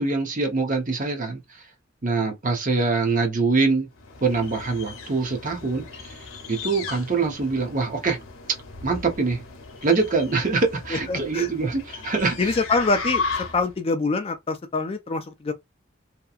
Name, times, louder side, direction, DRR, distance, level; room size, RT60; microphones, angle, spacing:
voice 1, 0.0-1.6 2.0-3.9 4.2-8.2 8.8-9.4 9.8-12.6, right 4 dB, 40° right, 0.8 m, -24 dB
sound 1, 4.0-13.8, left 4 dB, 90° left, 0.7 m, -36 dB
voice 2, 10.9-11.5 12.4-13.2 13.5-15.5, left 3 dB, 30° left, 0.4 m, -25 dB
2.8 x 2.3 x 2.4 m
head